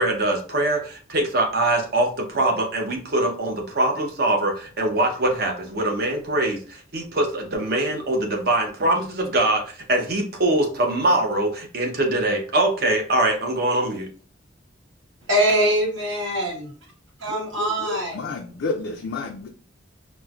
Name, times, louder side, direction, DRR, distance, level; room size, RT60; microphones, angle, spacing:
voice 1, 0.0-9.6 9.9-14.1, right 1 dB, 50° right, 2 dB, 0.7 m, -23 dB
voice 2, 15.3-16.7 17.2-18.2, equal, 75° right, -3 dB, 1.3 m, -23 dB
voice 3, 17.3-18.0 18.2-19.5, left 2 dB, 70° left, 1 dB, 0.4 m, -30 dB
4.3 x 2.1 x 2.3 m, 0.40 s
head